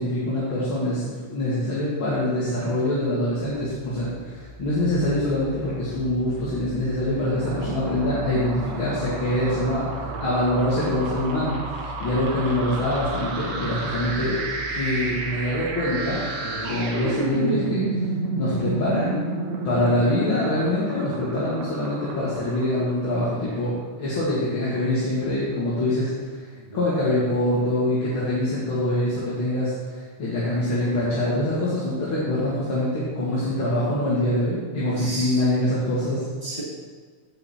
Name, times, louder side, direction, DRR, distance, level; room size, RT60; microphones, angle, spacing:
voice 1, 0.0-14.4 14.7-16.2 16.7-17.8 18.4-19.3 19.6-26.5 26.7-36.3, left 1 dB, 40° left, -9 dB, 2.7 m, -24 dB
sound 1, 3.2-17.3, right 1 dB, 80° left, 2.4 m, -40 dB
sound 2, 7.1-23.4, right 3 dB, 60° right, 2.1 m, -31 dB
voice 2, 10.0-10.3 16.4-16.7 19.8-19.9 26.7-26.8 35.0-35.4 36.4-36.6, right 2 dB, 15° left, -9 dB, 2.7 m, -35 dB
16.5 x 5.7 x 4.3 m, 1.5 s
omnidirectional pair, 3.7 m